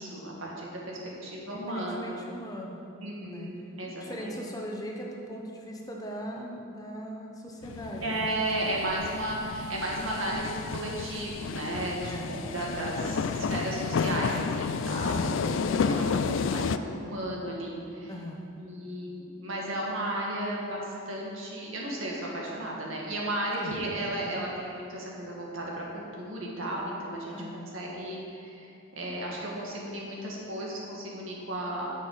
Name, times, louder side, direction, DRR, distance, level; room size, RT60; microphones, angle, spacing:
voice 1, 0.0-2.2 3.0-4.4 8.0-18.1 18.6-31.9, right 1 dB, 75° right, -3 dB, 2.1 m, -34 dB
voice 2, 1.6-2.8 3.2-3.5 4.0-8.4 12.1-12.5 15.0-15.5 18.1-18.6 23.6-24.1 27.3-27.7, equal, 20° left, -1 dB, 0.9 m, -39 dB
sound 1, 7.6-16.8, left 5 dB, 65° left, 0.3 m, -31 dB
10.0 x 6.7 x 5.6 m, 2.6 s
head